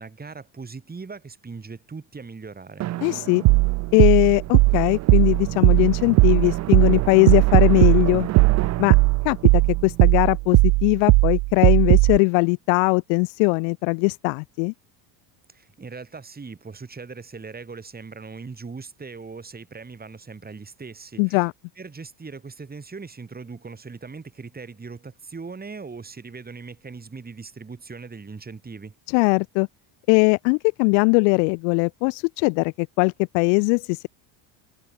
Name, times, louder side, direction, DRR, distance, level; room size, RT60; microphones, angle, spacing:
voice 1, 0.0-2.9 15.5-21.5 21.8-29.0, right 4 dB, 20° right, 4.0 m, -39 dB
Drum, 2.8-11.1, right 14 dB, 35° right, 0.5 m, -32 dB
voice 2, 3.0-3.4 3.9-8.3 8.8-9.0 9.2-14.7 21.2-21.5 29.1-29.7 30.1-34.1, left 40 dB or more, 80° left, 0.9 m, -20 dB
sound 1, 3.5-12.2, right 25 dB, 65° right, 0.8 m, -17 dB
supercardioid pair, 100°, 48 cm